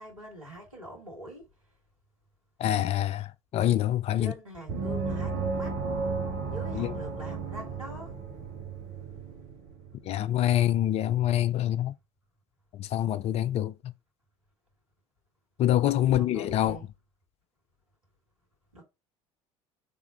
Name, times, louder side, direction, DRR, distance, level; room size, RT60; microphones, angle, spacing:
voice 1, 0.0-1.4 4.2-5.7 6.5-8.1 16.0-16.9 18.7-18.8, equal, 85° right, 1.7 m, -43 dB
voice 2, 2.6-4.3 6.7-6.9 10.0-11.9 12.7-13.9 15.6-16.8, left 12 dB, 40° left, 0.4 m, -26 dB
Gong, 4.7-9.9, right 4 dB, 50° right, 1.8 m, -33 dB
3.6 x 3.4 x 4.0 m
figure-of-eight pair, 65°, 17 cm